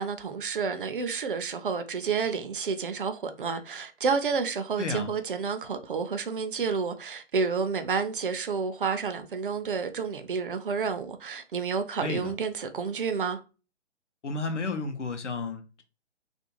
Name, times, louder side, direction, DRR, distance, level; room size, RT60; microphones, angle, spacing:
voice 1, 0.0-13.4, right 5 dB, 50° right, 0.4 m, -30 dB
voice 2, 4.8-5.1 12.0-12.3 14.2-15.8, left 3 dB, 85° left, 0.7 m, -32 dB
2.5 x 2.2 x 2.8 m
figure-of-eight pair, 135°, 35 cm